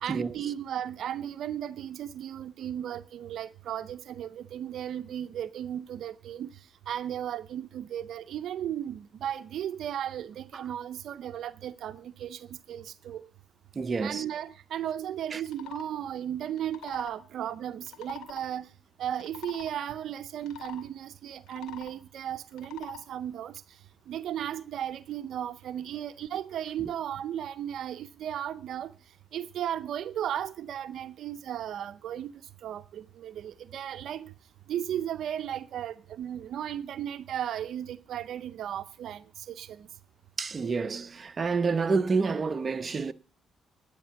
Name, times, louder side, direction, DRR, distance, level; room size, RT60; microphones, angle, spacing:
voice 1, 0.0-6.5 6.9-13.3 14.0-18.7 19.0-23.6 24.1-28.9 29.3-32.3 32.6-34.3 34.7-39.9, right 10 dB, 70° right, 0.6 m, -35 dB
voice 2, 13.7-14.2 15.3-15.4 40.4-43.1, right 4 dB, 35° right, 0.8 m, -28 dB
sound 1, 15.5-15.9 16.5-17.2 17.8-18.4 19.1-19.7 20.4-20.8 21.4-22.0 22.5-23.0, left 12 dB, 90° left, 2.4 m, -45 dB
10.5 x 10.0 x 6.9 m
cardioid pair, 90°, 0 cm